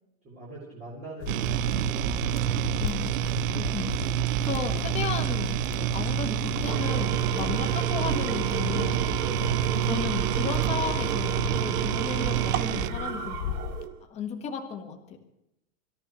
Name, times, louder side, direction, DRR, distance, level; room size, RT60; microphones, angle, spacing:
voice 1, 0.2-3.3 7.3-7.7 9.1-9.6, right 2 dB, 20° right, -6 dB, 4.0 m, -43 dB
sound 1, 1.2-13.9, left 9 dB, 75° left, 1.1 m, -36 dB
sound 2, 1.3-12.9, right 15 dB, 60° right, 0.7 m, -28 dB
voice 2, 2.8-3.1 3.5-4.2 4.4-9.1 9.8-13.5 14.0-15.2, left 6 dB, 15° left, 4 dB, 1.5 m, -34 dB
Engine / Tools, 6.5-14.0, right 9 dB, 80° right, 2.1 m, -32 dB
25.0 x 14.0 x 3.2 m, 0.85 s
supercardioid pair, 170°, 45 cm